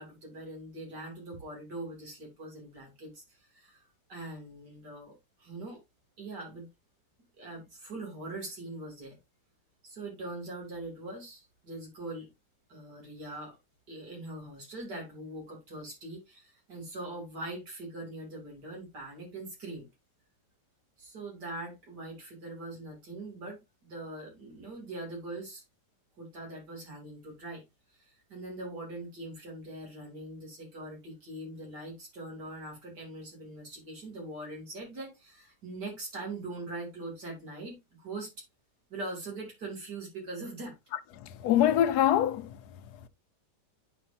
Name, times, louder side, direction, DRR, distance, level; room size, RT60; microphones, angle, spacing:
voice 1, 0.0-3.8 4.1-5.1 5.4-5.8 6.2-6.7 7.4-9.2 9.8-12.3 12.7-13.5 13.9-19.9 21.0-25.6 26.2-27.6 27.9-38.3 38.9-40.7, right 2 dB, 75° right, 3.6 m, -42 dB
voice 2, 41.2-43.1, left 11 dB, 75° left, 1.2 m, -26 dB
10.5 x 4.7 x 2.7 m
omnidirectional pair, 1.8 m